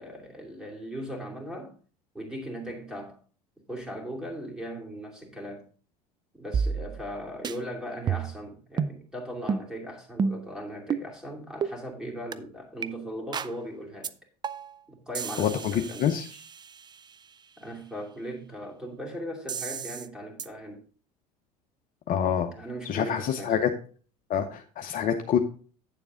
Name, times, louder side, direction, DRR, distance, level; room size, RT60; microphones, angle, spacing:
voice 1, 0.0-1.7 2.1-3.2 3.6-5.6 6.3-14.1 14.9-16.5 17.6-20.8 22.5-23.7, equal, 5° right, 2.7 m, -38 dB
sound 1, 6.5-7.2 7.4-7.6 8.1-8.4 8.8-9.0 9.5-9.7 10.2-10.5 10.9-11.1 11.6-11.7 12.3-12.4 12.8-12.9 13.3-13.6 14.0-14.1 14.4-14.8 15.1-17.0 19.5-20.1 20.4-20.5, right 6 dB, 20° right, 0.4 m, -31 dB
voice 2, 15.4-16.3 22.1-22.5 22.8-23.7 24.3-25.4, left 8 dB, 40° left, 0.8 m, -26 dB
8.9 x 7.0 x 3.6 m
figure-of-eight pair, 70°, 20 cm